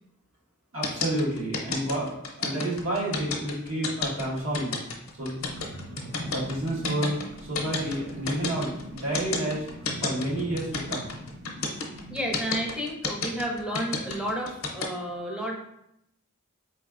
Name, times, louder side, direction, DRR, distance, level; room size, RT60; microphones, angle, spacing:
voice 1, 0.7-4.8 5.1-5.4 6.2-7.2 7.4-9.6 10.0-11.1, right 1 dB, 80° right, -6 dB, 1.4 m, -30 dB
sound 1, 0.8-14.9, left 4 dB, 75° left, 0.7 m, -30 dB
sound 2, 5.4-12.4, right 1 dB, 60° right, 0.6 m, -41 dB
voice 2, 12.1-15.5, equal, 5° right, 0 dB, 0.5 m, -31 dB
4.4 x 3.2 x 2.4 m, 0.79 s
head